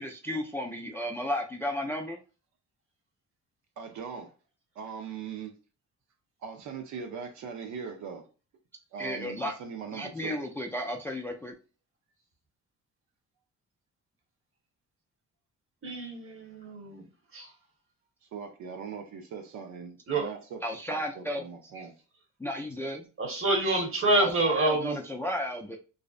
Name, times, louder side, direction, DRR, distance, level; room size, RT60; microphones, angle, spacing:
voice 1, 0.0-2.2 9.0-9.5 9.9-11.5 20.6-21.4 22.4-23.1 24.2-25.8, equal, 10° left, 0.3 m, -33 dB
voice 2, 3.8-4.3 4.8-5.5 6.4-8.3 8.9-10.4 18.3-20.6 20.9-21.9, right 6 dB, 70° right, 0.5 m, -40 dB
voice 3, 15.8-17.0 17.3-17.5 20.1-20.3 23.2-24.9, right 2 dB, 45° right, 1.1 m, -27 dB
2.6 x 2.0 x 2.4 m
cardioid pair, 90°, 30 cm